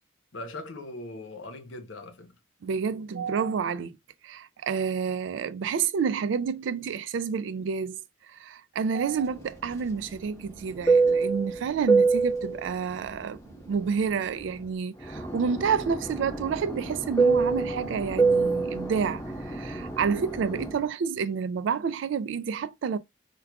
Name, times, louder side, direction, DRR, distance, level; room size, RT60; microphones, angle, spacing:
voice 1, 0.3-2.4, left 2 dB, 80° left, 0.8 m, -40 dB
voice 2, 2.6-4.0 4.2-8.0 8.3-23.0, right 6 dB, 75° right, 0.3 m, -29 dB
Fixed-wing aircraft airplane, 9.3-14.6 15.0-20.8, right 4 dB, 20° left, 1.5 m, -26 dB
4.6 x 2.3 x 2.2 m
head